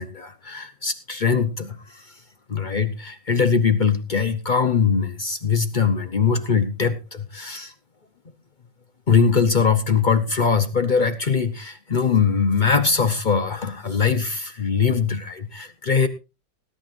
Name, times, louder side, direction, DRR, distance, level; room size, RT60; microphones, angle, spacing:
voice 1, 0.0-2.2 2.5-7.7 9.1-16.1, left 5 dB, 65° left, 10 dB, 0.4 m, -21 dB
19.5 x 11.5 x 2.6 m, 0.28 s
omnidirectional pair, 2.2 m